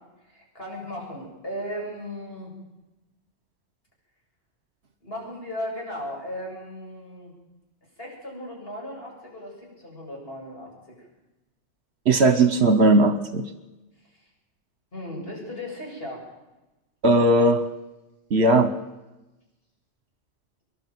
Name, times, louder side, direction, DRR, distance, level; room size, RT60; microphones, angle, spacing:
voice 1, 0.3-2.5 5.0-7.3 8.0-11.1 14.1-14.2 14.9-16.3, equal, 55° left, -3 dB, 8.2 m, -36 dB
voice 2, 12.1-13.4 17.0-17.6 18.3-18.7, right 2 dB, 65° right, 11 dB, 1.3 m, -18 dB
26.5 x 11.5 x 9.4 m, 1.0 s
omnidirectional pair, 1.2 m